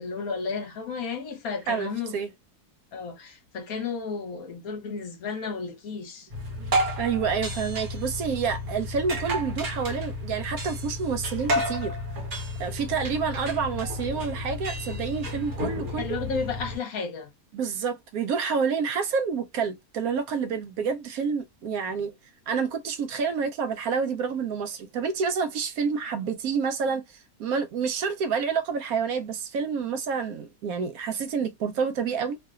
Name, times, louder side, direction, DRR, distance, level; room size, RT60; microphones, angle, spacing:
voice 1, 0.0-2.1 2.9-6.3 16.0-17.3, left 5 dB, 65° left, 1.3 m, -33 dB
voice 2, 1.7-2.3 6.6-12.0 12.6-16.2 17.5-22.1 22.5-32.4, right 6 dB, 70° right, 1.0 m, -28 dB
sound 1, 6.3-16.8, equal, 50° right, 1.4 m, -31 dB
3.2 x 2.7 x 2.3 m
omnidirectional pair, 1.7 m